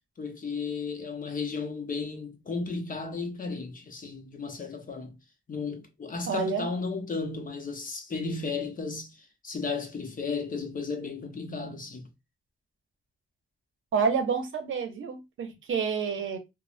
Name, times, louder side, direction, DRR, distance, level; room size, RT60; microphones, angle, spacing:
voice 1, 0.2-5.1 5.5-9.1 9.4-12.1, left 4 dB, 40° left, 0.8 m, -34 dB
voice 2, 6.3-6.7 13.9-16.4, right 6 dB, 70° right, 0.7 m, -28 dB
3.1 x 2.1 x 2.5 m
cardioid pair, 100°, 21 cm